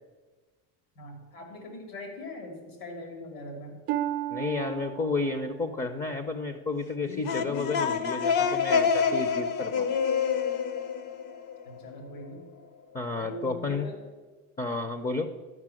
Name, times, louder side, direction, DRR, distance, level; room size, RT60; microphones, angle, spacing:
voice 1, 1.0-3.8 11.6-12.4 13.2-14.0, left 1 dB, 80° left, 3 dB, 2.8 m, -41 dB
Harp, 3.9-7.6 8.2-8.6 9.2-9.3, right 12 dB, 30° right, 0.7 m, -36 dB
voice 2, 4.3-9.9 12.9-13.9 14.6-15.3, left 3 dB, 20° left, 9 dB, 0.7 m, -31 dB
sound 1, 7.0-11.8, left 6 dB, 45° left, 0.9 m, -27 dB
12.0 x 5.6 x 7.7 m, 1.4 s
supercardioid pair, 125°, 44 cm